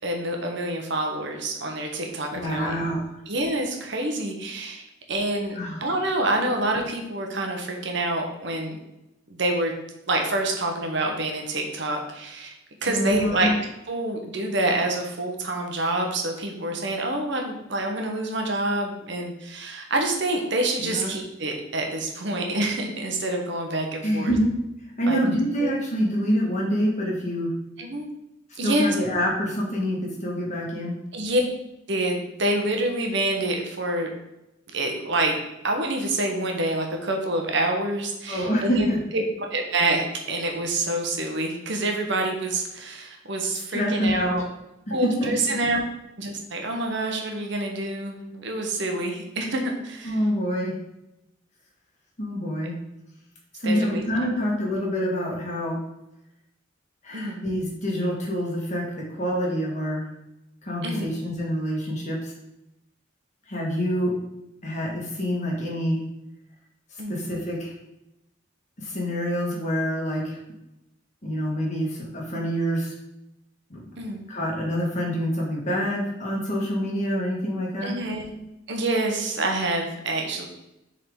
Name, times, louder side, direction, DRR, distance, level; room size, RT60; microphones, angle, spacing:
voice 1, 0.0-2.7 3.3-8.8 9.3-9.7 10.1-12.5 12.8-13.5 13.9-24.3 25.1-25.7 27.8-28.1 28.6-28.9 31.1-31.4 31.9-34.1 34.7-35.4 35.6-39.2 39.5-40.0 40.3-44.4 44.9-45.8 46.2-50.2 53.6-54.3 57.1-57.4 60.8-61.1 67.0-67.2 74.0-74.2 77.8-78.3 78.7-80.5, right 2 dB, 65° right, 2 dB, 1.0 m, -27 dB
voice 2, 2.3-3.2 5.6-5.9 12.9-13.5 20.8-21.1 24.0-24.5 25.0-27.5 28.6-31.0 38.3-39.0 43.7-44.4 45.0-45.3 50.0-50.8 52.2-52.8 53.6-55.8 57.0-60.1 60.6-62.3 63.5-64.1 64.6-66.0 67.1-67.7 68.8-70.4 71.2-72.9 73.7-73.9 74.3-77.9, equal, 40° left, -3 dB, 1.8 m, -26 dB
6.9 x 3.8 x 3.7 m, 0.89 s
head